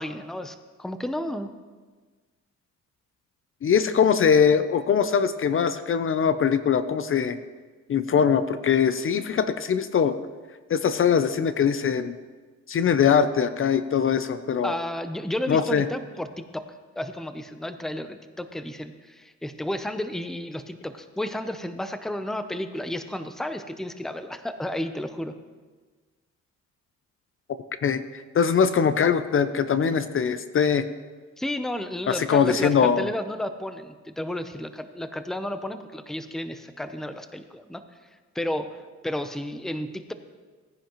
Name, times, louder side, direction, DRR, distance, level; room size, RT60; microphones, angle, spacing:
voice 1, 0.0-1.5 14.6-16.6 17.0-25.3 31.4-37.8 38.3-40.1, left 1 dB, ahead, 9 dB, 0.7 m, -32 dB
voice 2, 3.6-7.4 7.9-10.1 10.7-12.2 12.7-14.7 15.5-15.8 27.8-30.9 32.1-33.1, left 7 dB, 45° left, 12 dB, 0.6 m, -22 dB
18.0 x 10.0 x 3.0 m, 1.4 s
cardioid pair, 90°, 30 cm